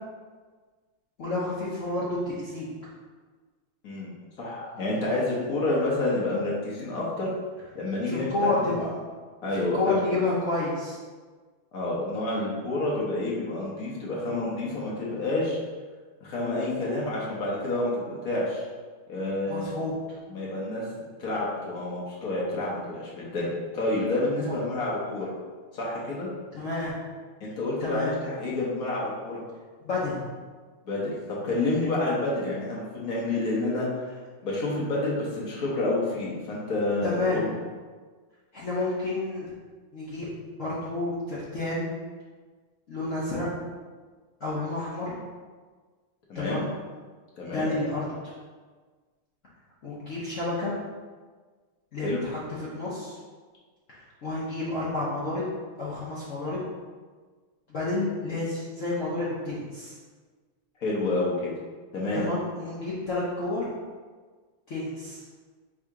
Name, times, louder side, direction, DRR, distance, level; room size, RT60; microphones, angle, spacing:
voice 1, 1.2-2.7 8.1-8.9 9.5-11.0 19.5-20.0 26.5-26.9 27.8-28.1 29.8-30.2 37.0-37.4 38.5-39.5 39.9-40.3 40.6-41.9 42.9-43.5 44.4-45.1 46.3-46.7 47.4-48.3 49.8-50.7 51.9-53.2 53.9-55.4 55.8-56.6 57.7-60.0 62.1-63.6 64.7-65.2, left 2 dB, 70° left, -7 dB, 0.7 m, -30 dB
voice 2, 4.4-7.3 7.7-8.7 9.4-10.0 11.7-15.6 16.2-18.6 19.1-19.8 20.3-25.3 25.7-26.3 27.4-29.4 30.8-33.9 34.4-37.5 46.3-46.6 47.3-47.7 52.0-52.2 60.8-61.5 61.9-62.3, left 2 dB, 55° left, -5 dB, 1.1 m, -29 dB
3.7 x 2.7 x 4.6 m, 1.4 s
omnidirectional pair, 2.3 m